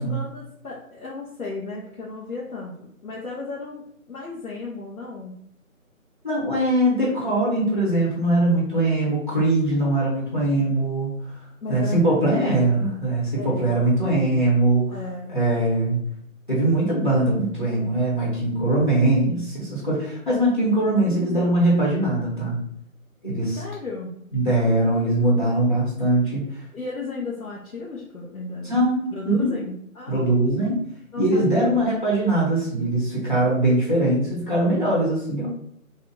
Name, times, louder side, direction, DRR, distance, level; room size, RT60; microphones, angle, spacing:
voice 1, 0.0-5.4 11.6-12.8 13.3-13.7 14.9-15.4 21.0-21.4 23.5-24.2 26.7-28.7 29.1-30.3 31.1-31.8, left 3 dB, 90° left, -4 dB, 0.9 m, -35 dB
voice 2, 6.2-11.3 11.7-14.8 15.3-16.0 16.5-22.6 23.2-23.6 24.3-26.6 28.6-29.5 30.1-30.8 31.2-35.5, right 1 dB, 35° left, -6 dB, 0.9 m, -21 dB
2.7 x 2.4 x 3.7 m, 0.69 s
figure-of-eight pair, 170°, 42 cm